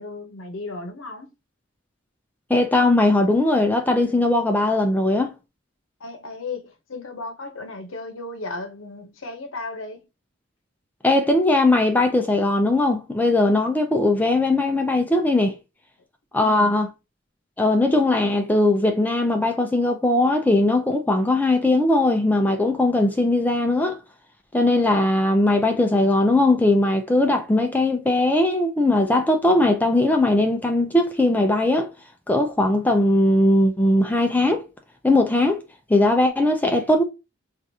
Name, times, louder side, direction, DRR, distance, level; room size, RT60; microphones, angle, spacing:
voice 1, 0.0-1.3 6.0-10.0 16.3-16.7, left 3 dB, 80° left, 0.8 m, -35 dB
voice 2, 2.5-5.3 11.0-15.6 16.3-16.9 17.6-24.0 24.5-31.9 32.3-34.6 35.0-35.6 35.9-37.0, left 2 dB, 10° left, 0.4 m, -19 dB
4.5 x 2.5 x 2.7 m
head